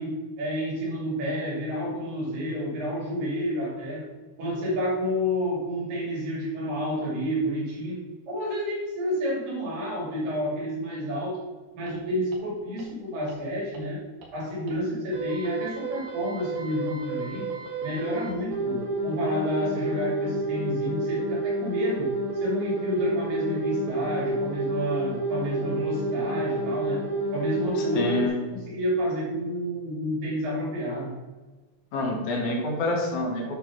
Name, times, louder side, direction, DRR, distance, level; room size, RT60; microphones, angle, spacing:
voice 1, 0.0-4.1 4.4-11.4 11.7-14.0 14.3-17.5 17.8-27.0 27.3-28.2 28.5-31.2, equal, 80° right, -5 dB, 4.5 m, -30 dB
sound 1, 11.9-12.0 12.3-12.4 12.8-12.9 13.3-13.4 13.7-13.8 14.2-14.3 14.7-14.8 15.1-28.3, right 2 dB, 65° right, 2.8 m, -30 dB
voice 2, 27.8-28.4 31.9-33.4, left 2 dB, 65° left, 0 dB, 2.6 m, -27 dB
8.6 x 4.5 x 5.8 m, 1.3 s
omnidirectional pair, 3.9 m